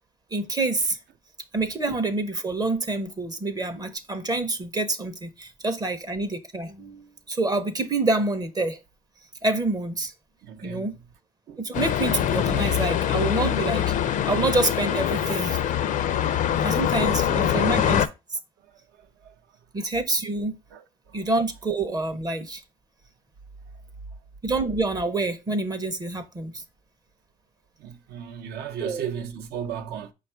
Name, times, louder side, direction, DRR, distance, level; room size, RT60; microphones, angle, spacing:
voice 1, 0.3-1.0 1.5-8.8 9.4-10.1 10.6-10.9 11.6-15.6 16.6-18.0 19.7-20.6 21.1-22.6 24.4-26.6 28.8-29.0, right 2 dB, 20° right, 0.6 m, -27 dB
voice 2, 10.4-11.1 11.5-11.7 16.9-17.9 18.6-19.7 20.7-21.3 23.7-24.2 24.5-24.6 27.8-30.1, right 8 dB, 70° right, 0.7 m, -37 dB
sound 1, 11.7-18.1, left 10 dB, 50° left, 0.4 m, -24 dB
5.1 x 2.3 x 4.3 m
cardioid pair, 110°, 17 cm